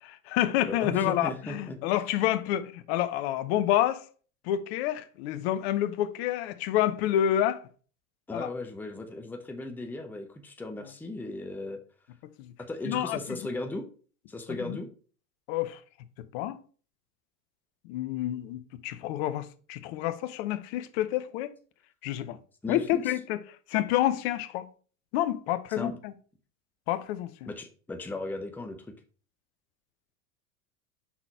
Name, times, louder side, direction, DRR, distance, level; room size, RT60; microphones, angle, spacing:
voice 1, 0.0-4.1 4.4-7.7 8.3-8.5 12.4-12.5 12.8-13.4 14.5-14.8 15.5-15.8 16.2-16.6 17.8-21.5 22.0-22.4 22.7-23.4 23.7-24.7 25.1-26.1 26.9-27.5, left 12 dB, 50° left, 0.7 m, -28 dB
voice 2, 0.6-1.8 8.3-11.8 12.7-13.8 14.3-14.9 22.6-23.0 25.8-25.9 27.5-28.8, left 2 dB, 5° left, 0.7 m, -36 dB
5.8 x 3.9 x 4.5 m
figure-of-eight pair, 85°, 41 cm